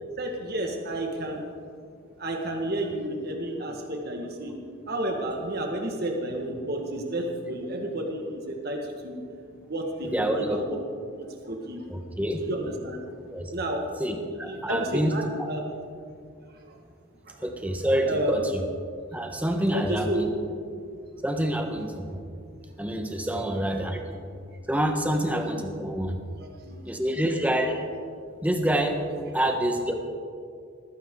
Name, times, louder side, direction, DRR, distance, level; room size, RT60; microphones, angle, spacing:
voice 1, 0.2-1.5 2.2-4.5 4.9-8.8 9.0-9.2 9.7-10.8 11.1-11.8 12.4-13.0 13.5-13.8 14.5-15.6 16.5-16.8 17.3-17.4 18.1-18.5 19.7-20.3 26.4-26.8, right 1 dB, 50° right, 1 dB, 1.7 m, -31 dB
voice 2, 10.0-10.6 11.9-12.4 13.3-13.5 14.0-15.1 15.4-15.5 17.4-18.6 19.1-20.3 21.2-22.2 22.8-24.3 24.7-26.2 26.8-27.8 28.4-29.0 29.3-29.9, right 1 dB, 5° right, 4 dB, 1.2 m, -27 dB
20.0 x 15.0 x 3.8 m, 2.3 s
head